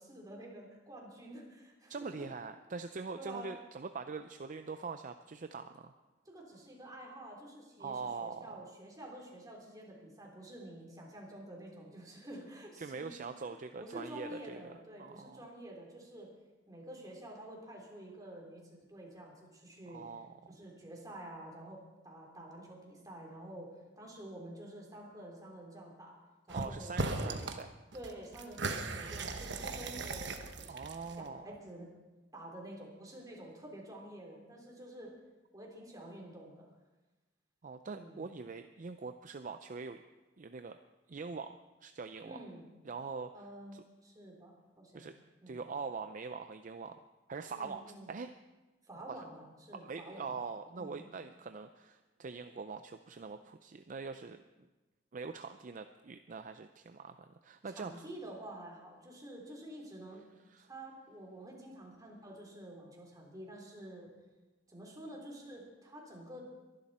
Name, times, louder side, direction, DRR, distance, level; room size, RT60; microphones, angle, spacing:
voice 1, 0.0-2.3 3.2-3.6 6.3-13.5 13.8-16.3 16.7-20.1 20.5-26.2 26.5-26.9 27.2-27.3 27.9-30.3 30.6-30.8 31.1-31.9 32.3-35.1 35.5-36.7 37.9-38.2 42.2-42.6 43.3-45.1 45.4-45.6 47.5-48.1 48.8-50.4 50.7-51.0 57.6-60.3 60.7-64.1 64.7-66.5, right 1 dB, 20° right, -1 dB, 3.6 m, -49 dB
voice 2, 1.9-5.9 7.8-8.6 12.8-14.7 15.0-15.4 19.9-20.3 26.5-27.7 30.7-31.5 37.6-40.0 40.4-40.8 41.1-42.4 42.8-43.4 43.7-43.8 44.9-45.1 45.5-47.0 47.3-48.3 49.1-49.2 49.8-54.4 55.1-58.1 60.5-60.7, right 4 dB, 45° right, 8 dB, 0.5 m, -43 dB
sound 1, 26.5-26.7 27.0-27.6 27.9-31.3, right 3 dB, 65° right, 1.2 m, -38 dB
23.0 x 11.5 x 4.3 m, 1.1 s
head